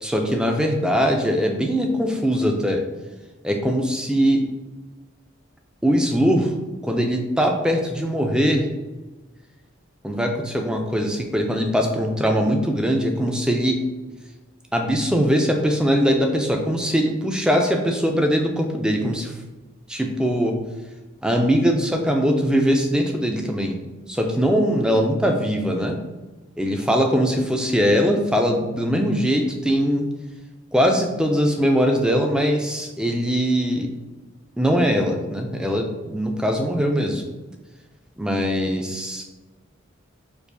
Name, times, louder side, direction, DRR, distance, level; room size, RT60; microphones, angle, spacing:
voice 1, 0.0-2.8 3.4-4.4 5.8-6.5 6.8-8.7 10.0-13.8 14.7-19.4 19.9-20.6 21.2-23.8 24.1-26.0 26.6-30.1 30.7-33.9 34.6-37.2 38.2-39.2, equal, 5° right, 3 dB, 0.3 m, -21 dB
4.4 x 2.4 x 2.6 m, 1.2 s
head